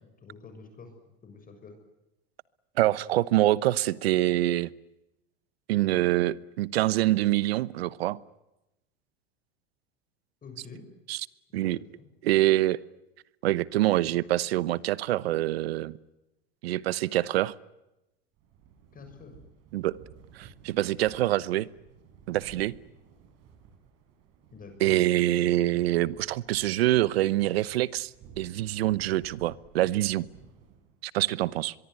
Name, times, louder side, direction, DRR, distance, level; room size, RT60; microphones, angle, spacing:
voice 1, 0.2-0.9 1.2-1.8 10.4-10.9 11.5-12.1 18.9-19.4 24.5-25.2, left 4 dB, 30° left, 6 dB, 6.7 m, -47 dB
voice 2, 2.8-4.7 5.7-8.2 11.1-11.2 11.5-11.8 12.2-12.8 13.4-16.0 16.6-17.5 19.7-19.9 20.3-21.7 22.3-22.7 24.8-28.1 28.4-30.3 31.0-31.7, right 15 dB, 85° right, 20 dB, 1.0 m, -25 dB
sound 1, 18.4-31.1, right 7 dB, 55° right, 6.9 m, -54 dB
24.0 x 23.0 x 9.6 m, 0.93 s
supercardioid pair, 105°, 30 cm